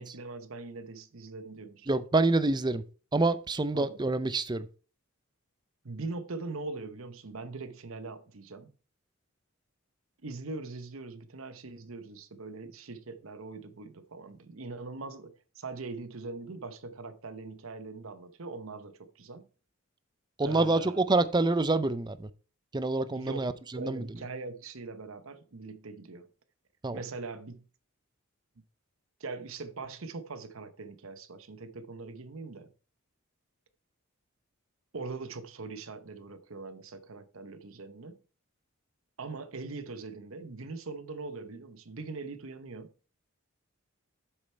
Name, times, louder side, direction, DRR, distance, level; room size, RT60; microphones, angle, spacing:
voice 1, 0.0-1.9 3.7-4.0 5.8-8.7 10.2-19.5 20.4-21.3 23.1-26.3 26.9-27.6 29.2-32.7 34.9-38.2 39.2-42.9, right 3 dB, 70° right, 0.9 m, -41 dB
voice 2, 1.9-2.8 3.1-4.7 20.4-22.3 22.7-24.0 26.8-27.0, right 2 dB, 20° right, 0.5 m, -27 dB
8.0 x 6.6 x 4.4 m
head